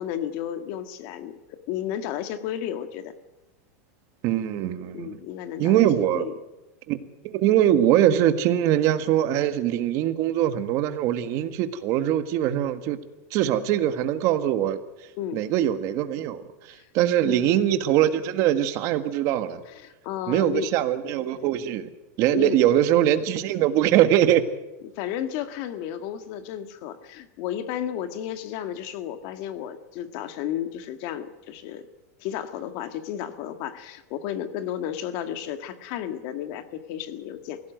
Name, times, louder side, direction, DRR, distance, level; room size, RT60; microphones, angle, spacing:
voice 1, 0.0-3.1 4.9-6.3 15.2-15.4 16.7-16.9 17.2-17.5 19.7-20.7 22.3-22.8 24.8-31.9 32.2-37.6, left 10 dB, 45° left, 10 dB, 1.8 m, -33 dB
voice 2, 4.2-5.2 5.6-6.3 6.9-7.0 7.2-13.0 13.3-14.8 15.3-19.6 20.3-21.9 22.2-24.4, right 11 dB, 35° right, 10 dB, 1.6 m, -22 dB
24.0 x 16.5 x 9.3 m, 1.1 s
supercardioid pair, 165°, 8 cm